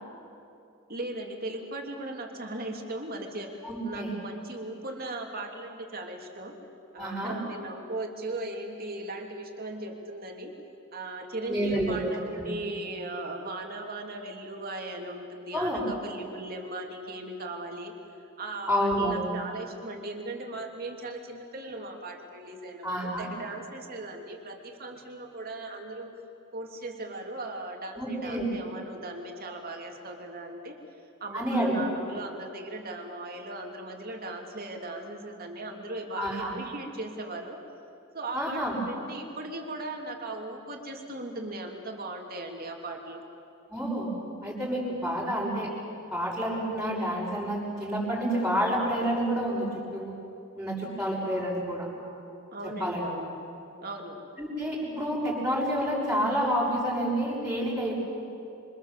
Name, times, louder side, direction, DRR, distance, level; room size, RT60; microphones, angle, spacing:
voice 1, 0.9-6.6 6.9-10.5 10.9-17.9 18.4-26.1 26.5-30.8 31.2-37.6 38.1-43.2 52.5-53.3 53.8-54.2, right 2 dB, 45° right, 2 dB, 2.9 m, -38 dB
voice 2, 3.6-4.1 7.0-7.4 11.5-12.0 12.3-12.5 15.5-15.9 18.7-19.3 22.8-23.3 28.0-28.5 31.3-31.8 36.2-36.5 38.3-38.8 43.7-44.1 44.4-45.7 46.1-49.7 49.9-50.1 50.6-51.9 52.8-53.0 54.4-58.0, equal, 5° right, -6 dB, 5.9 m, -29 dB
27.0 x 25.0 x 7.4 m, 2.6 s
head